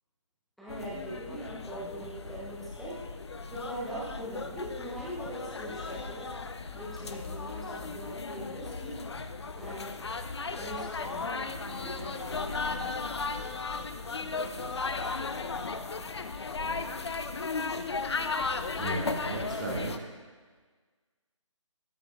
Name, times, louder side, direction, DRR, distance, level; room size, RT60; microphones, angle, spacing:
voice 1, 0.6-3.0 3.5-6.3 6.7-9.0 9.6-10.0 10.6-11.3 11.8-12.0, right 1 dB, ahead, -9 dB, 0.4 m, -41 dB
sound 1, 0.7-20.0, left 4 dB, 55° left, 0.6 m, -36 dB
sound 2, 11.0-13.1, right 1 dB, 50° right, 2.9 m, -46 dB
voice 2, 18.2-20.1, right 2 dB, 35° right, -2 dB, 1.3 m, -36 dB
13.0 x 10.5 x 2.5 m, 1.5 s
figure-of-eight pair, 150°, 17 cm